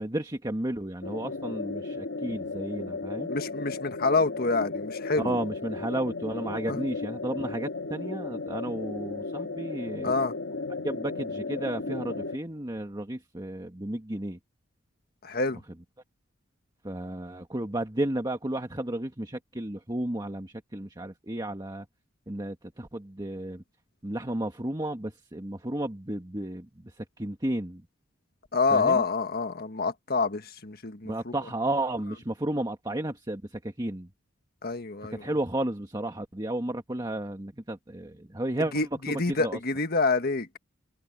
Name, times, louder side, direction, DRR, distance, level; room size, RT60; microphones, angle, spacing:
voice 1, 0.0-3.3 5.2-10.1 10.8-14.4 16.8-21.9 22.3-23.6 24.0-27.8 28.7-29.0 31.0-34.1 35.0-38.7 39.1-39.6, right 1 dB, 20° right, 1.6 m, -33 dB
sound 1, 1.0-12.4, left 3 dB, 80° left, 1.6 m, -35 dB
voice 2, 3.3-5.4 6.7-6.8 10.0-10.3 15.2-15.6 28.5-31.3 34.6-35.2 38.7-40.6, left 3 dB, 50° left, 1.6 m, -27 dB
head